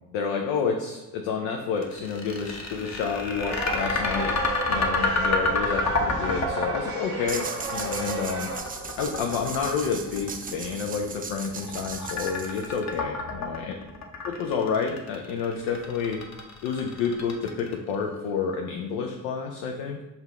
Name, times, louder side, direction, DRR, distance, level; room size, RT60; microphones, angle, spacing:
voice 1, 0.1-4.3 4.7-8.5 9.0-13.7 14.2-16.2 16.6-20.0, left 5 dB, 70° left, 2 dB, 0.6 m, -29 dB
sound 1, 1.8-17.9, left 3 dB, 35° left, 0.9 m, -30 dB
sound 2, 3.4-8.6, right 2 dB, 80° right, 0.8 m, -33 dB
sound 3, 7.3-13.0, right 5 dB, 20° right, 0.4 m, -38 dB
5.6 x 2.2 x 3.6 m, 1.0 s
hypercardioid pair, 45°, 48 cm